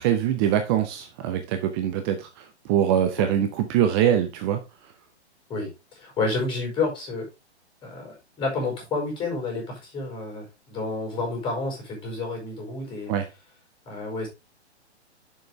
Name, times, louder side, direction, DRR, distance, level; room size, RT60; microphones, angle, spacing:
voice 1, 0.0-4.6 13.1-13.2, right 10 dB, 20° right, 0.7 m, -23 dB
voice 2, 5.5-7.3 7.8-13.1 13.8-14.3, left 3 dB, 15° left, 5.0 m, -30 dB
7.8 x 7.1 x 3.5 m
figure-of-eight pair, 120°, 34 cm